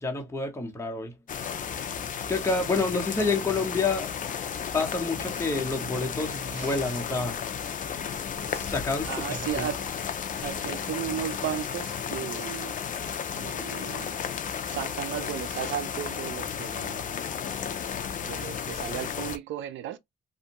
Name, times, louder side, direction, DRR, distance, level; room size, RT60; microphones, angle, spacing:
voice 1, 0.0-1.1 2.3-4.1 4.7-7.4 8.4-9.7, left 3 dB, 15° left, 0.9 m, -28 dB
sound 1, 1.3-19.4, left 7 dB, 40° left, 0.4 m, -33 dB
voice 2, 6.5-7.0 9.0-9.9 10.4-12.8 13.3-14.2 14.7-17.0 18.2-20.0, right 11 dB, 70° right, 0.4 m, -35 dB
2.6 x 2.1 x 2.9 m
cardioid pair, 90°, 20 cm